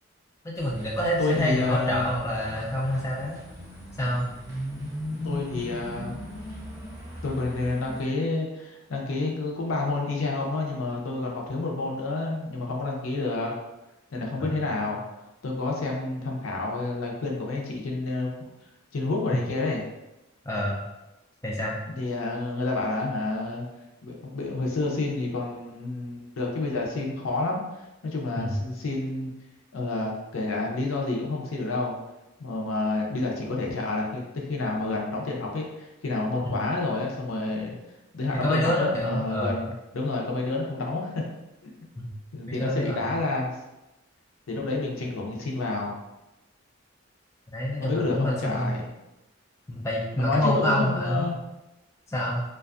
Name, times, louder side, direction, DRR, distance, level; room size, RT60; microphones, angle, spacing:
voice 1, 0.4-3.4 4.0-4.3 14.4-14.6 20.5-20.8 21.4-21.8 28.4-28.5 36.4-36.5 38.4-39.6 42.0-42.1 42.5-43.0 47.5-48.8 49.7-51.3 52.1-52.4, left 1 dB, 15° left, -4 dB, 0.3 m, -27 dB
sound 1, 0.6-8.0, left 1 dB, 15° right, 0.6 m, -38 dB
voice 2, 1.2-2.2 4.8-6.1 7.2-13.5 14.1-15.0 15.4-18.3 18.9-19.8 21.9-23.7 24.0-29.3 29.7-31.9 32.4-37.8 38.1-41.2 41.6-41.7 42.3-43.5 44.5-46.0 47.8-48.9 50.1-51.4, left 2 dB, 75° left, -1 dB, 0.5 m, -29 dB
2.5 x 2.3 x 2.4 m, 0.97 s
head